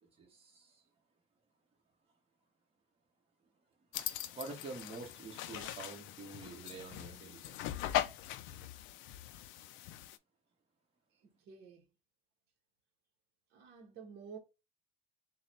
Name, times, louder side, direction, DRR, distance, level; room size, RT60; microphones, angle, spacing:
voice 1, 0.0-0.8 4.3-7.7, right 3 dB, 30° right, 1.3 m, -48 dB
sound 1, 3.9-10.2, left 12 dB, 80° left, 0.4 m, -40 dB
voice 2, 11.5-11.8 13.5-14.4, right 6 dB, 60° right, 1.0 m, -50 dB
3.9 x 2.2 x 4.1 m
cardioid pair, 140°, 20 cm